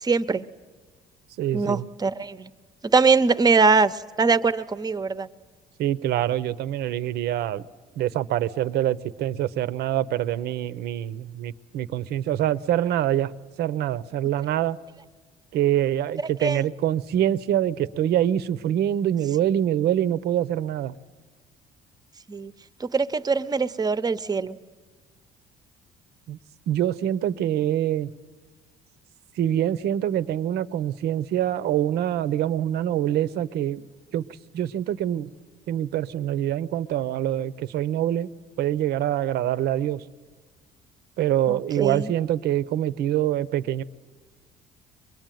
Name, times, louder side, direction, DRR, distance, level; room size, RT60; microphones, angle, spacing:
voice 1, 0.0-0.4 1.5-2.5 2.8-5.3 16.4-16.6 22.3-22.5 22.8-24.6 41.5-42.1, right 4 dB, 25° right, 0.8 m, -22 dB
voice 2, 1.4-1.9 5.8-7.6 8.0-13.3 13.6-14.8 15.5-20.9 26.3-26.4 26.7-28.1 29.4-33.8 34.1-34.2 34.5-35.3 35.7-38.3 38.6-40.0 41.2-43.8, right 11 dB, 75° right, 0.8 m, -25 dB
22.5 x 22.5 x 9.2 m
cardioid pair, 110°, 17 cm